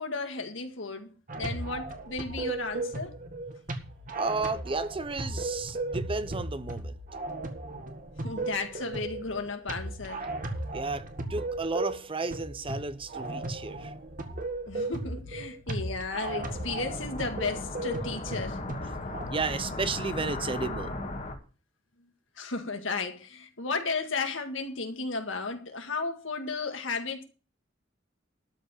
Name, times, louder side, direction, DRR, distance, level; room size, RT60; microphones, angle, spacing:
voice 1, 0.0-3.2 8.2-10.3 14.7-18.6 22.4-27.2, left 4 dB, 70° left, 1.9 m, -34 dB
sound 1, 1.3-19.2, right 2 dB, 45° right, 1.8 m, -36 dB
voice 2, 4.1-7.0 10.7-13.9 19.3-21.0, right 3 dB, 30° right, 0.8 m, -33 dB
sound 2, 16.3-21.4, left 2 dB, 40° left, 1.8 m, -36 dB
12.5 x 5.2 x 8.5 m
head